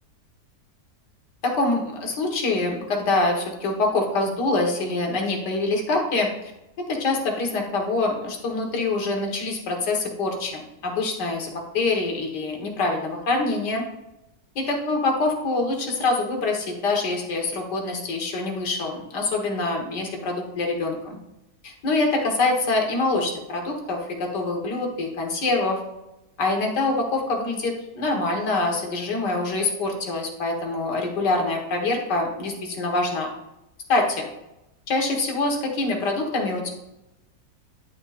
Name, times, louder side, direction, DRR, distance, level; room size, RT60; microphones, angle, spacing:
voice 1, 1.4-6.3 6.9-13.9 14.6-21.2 21.6-25.8 26.4-33.3 33.9-34.2 34.9-36.8, left 2 dB, 85° left, 1 dB, 2.0 m, -25 dB
10.5 x 6.6 x 2.5 m, 0.91 s
omnidirectional pair, 1.8 m